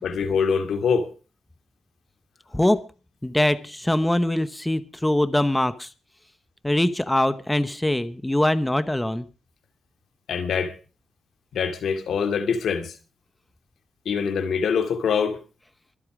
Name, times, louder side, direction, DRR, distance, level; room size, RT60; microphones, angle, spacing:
voice 1, 0.0-1.1 10.3-10.7 11.5-12.9 14.1-15.4, left 6 dB, 80° left, 2.3 m, -24 dB
voice 2, 3.2-5.9 6.6-9.2, left 1 dB, 10° left, 0.9 m, -22 dB
24.0 x 8.5 x 4.9 m
wide cardioid pair, 120°, 0 cm